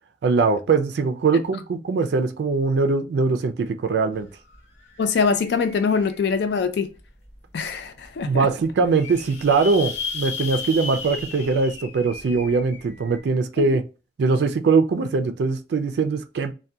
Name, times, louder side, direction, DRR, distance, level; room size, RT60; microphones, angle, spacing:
voice 1, 0.2-4.3 8.3-13.8 14.2-16.5, right 4 dB, 65° right, 0.3 m, -21 dB
sound 1, 4.1-4.2 4.5-6.6 7.2-7.3 7.7-7.8 8.0-8.1 8.6-13.2, left 4 dB, 80° left, 1.1 m, -35 dB
voice 2, 5.0-6.9 7.5-8.5 13.6-13.7, left 5 dB, 65° left, 0.3 m, -23 dB
2.6 x 2.2 x 2.2 m
head